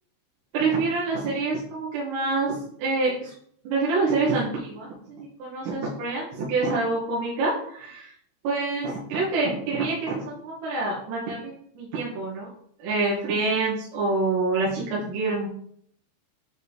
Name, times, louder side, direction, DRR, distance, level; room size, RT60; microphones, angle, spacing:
voice 1, 0.5-3.3 3.6-8.1 8.4-12.5 12.8-15.5, right 3 dB, 70° right, -6 dB, 3.1 m, -26 dB
9.2 x 3.8 x 3.4 m, 0.65 s
omnidirectional pair, 5.4 m